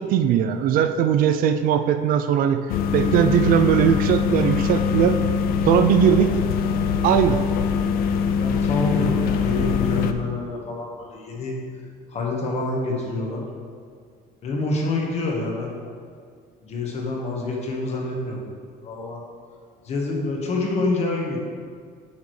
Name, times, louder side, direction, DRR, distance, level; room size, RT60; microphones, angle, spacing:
voice 1, 0.0-2.6 2.9-5.2 5.7-6.3 7.0-7.4, right 9 dB, 55° right, 8 dB, 0.4 m, -19 dB
sound 1, 2.7-10.1, left 6 dB, 60° left, 0.4 m, -22 dB
voice 2, 8.4-11.6 12.1-13.4 14.4-15.7 16.6-18.4 18.8-19.2 19.8-21.4, left 2 dB, 40° left, -1 dB, 1.3 m, -27 dB
8.6 x 6.0 x 3.2 m, 2.1 s
cardioid pair, 155°, 17 cm